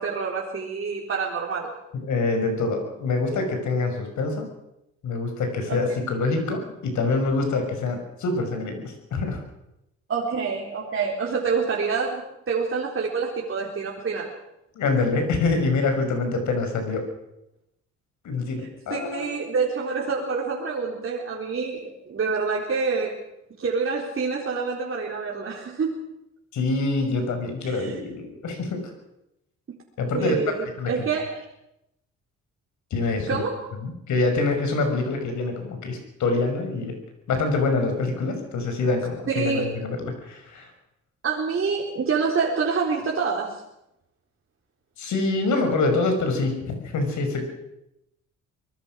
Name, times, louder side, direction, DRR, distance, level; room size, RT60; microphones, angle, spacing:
voice 1, 0.0-1.7 5.7-5.8 10.1-14.3 18.9-23.2 23.6-26.0 27.6-27.9 29.7-29.8 30.1-31.4 33.3-33.7 39.3-39.7 41.2-43.6, right 5 dB, 45° right, -3 dB, 4.0 m, -27 dB
voice 2, 1.9-4.5 5.0-9.4 14.7-17.0 18.2-19.3 26.5-28.9 30.0-30.4 30.6-30.9 32.9-33.4 33.8-37.0 37.3-40.7 45.0-47.4, left 3 dB, 70° left, 5 dB, 6.2 m, -25 dB
24.0 x 19.5 x 6.4 m, 0.85 s
cardioid pair, 90°, 30 cm